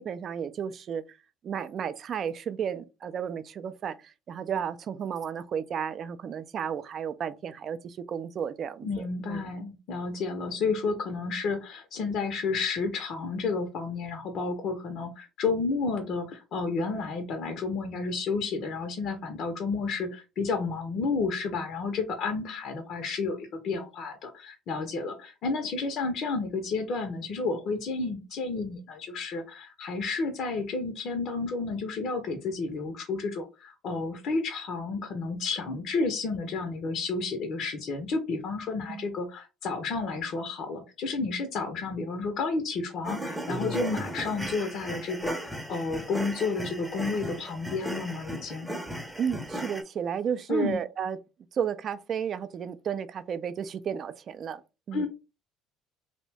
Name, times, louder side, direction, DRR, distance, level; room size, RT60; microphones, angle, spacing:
voice 1, 0.1-1.2 1.4-9.5 38.9-39.1 49.2-51.2 51.5-54.6 54.9-55.1, right 8 dB, 50° right, 0.3 m, -33 dB
voice 2, 8.8-48.7 50.5-50.8 54.9-55.1, left 4 dB, 60° left, 0.5 m, -31 dB
sound 1, 43.0-49.8, equal, 5° right, 0.6 m, -36 dB
2.6 x 2.0 x 3.1 m
hypercardioid pair, 70°, 0 cm